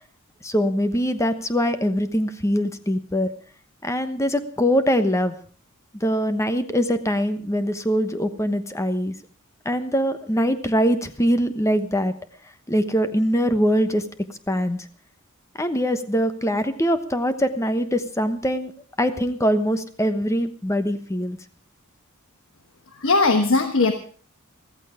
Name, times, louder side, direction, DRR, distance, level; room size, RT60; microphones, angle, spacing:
voice 1, 0.4-3.3 3.8-5.3 5.9-9.1 9.6-12.1 12.7-14.0 14.5-14.8 15.6-18.7 19.0-21.4, equal, 15° left, 10 dB, 1.1 m, -22 dB
voice 2, 23.0-23.9, left 3 dB, 65° left, 6 dB, 1.3 m, -18 dB
14.5 x 14.5 x 5.0 m, 0.42 s
head